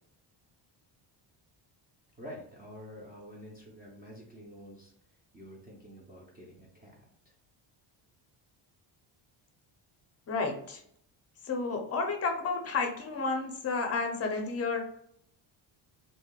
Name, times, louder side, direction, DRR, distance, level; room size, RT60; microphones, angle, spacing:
voice 1, 2.2-4.9 5.3-7.3, equal, 20° right, -3 dB, 0.5 m, -48 dB
voice 2, 10.3-10.8 11.4-14.8, left 4 dB, 30° left, 3 dB, 0.5 m, -31 dB
3.3 x 2.7 x 2.2 m, 0.69 s
cardioid pair, 170°, 49 cm